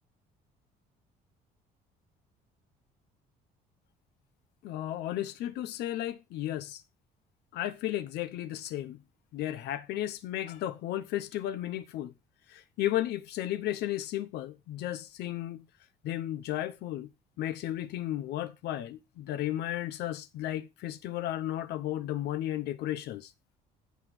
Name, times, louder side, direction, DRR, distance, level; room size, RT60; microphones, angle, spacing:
voice 1, 4.6-6.8 7.5-9.0 9.3-12.1 12.5-15.6 16.0-17.1 17.4-23.3, left 13 dB, 80° left, 0.9 m, -34 dB
16.5 x 6.2 x 3.3 m
cardioid pair, 110°, 17 cm